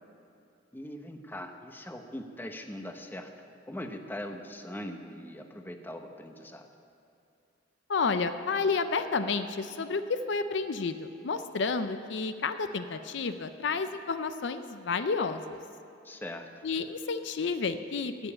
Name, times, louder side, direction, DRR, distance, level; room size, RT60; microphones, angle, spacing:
voice 1, 0.7-3.3 3.7-6.7 16.0-16.7, left 1 dB, 10° left, 5 dB, 0.8 m, -41 dB
voice 2, 7.9-11.0 11.2-15.6 16.6-18.3, left 4 dB, 65° left, 10 dB, 0.5 m, -30 dB
15.5 x 7.0 x 8.6 m, 2.6 s
head